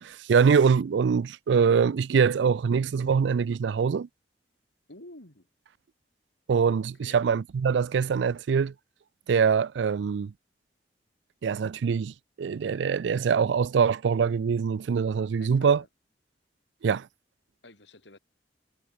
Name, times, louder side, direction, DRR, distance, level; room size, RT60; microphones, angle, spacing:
voice 1, 0.0-4.1 6.5-8.7 9.3-10.3 11.4-15.8 16.8-17.1, right 6 dB, 85° right, 0.4 m, -24 dB
voice 2, 4.9-5.5 6.9-7.2 15.4-15.9 17.6-18.2, left 2 dB, 85° left, 5.1 m, -49 dB
head